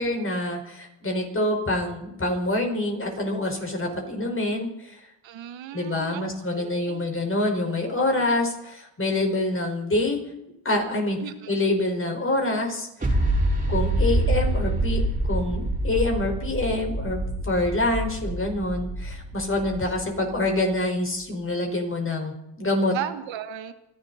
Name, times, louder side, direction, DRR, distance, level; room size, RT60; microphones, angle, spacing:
voice 1, 0.0-5.1 5.7-10.2 10.7-11.2 11.5-12.9 13.7-15.0 15.3-23.0, left 2 dB, 30° left, 2 dB, 5.4 m, -26 dB
voice 2, 5.2-6.3 6.6-7.0 11.2-11.3 22.9-23.7, right 10 dB, 80° right, 10 dB, 1.4 m, -35 dB
sound 1, 13.0-20.5, right 1 dB, 20° right, 4.6 m, -26 dB
28.0 x 11.5 x 4.3 m, 0.85 s
cardioid pair, 105°, 44 cm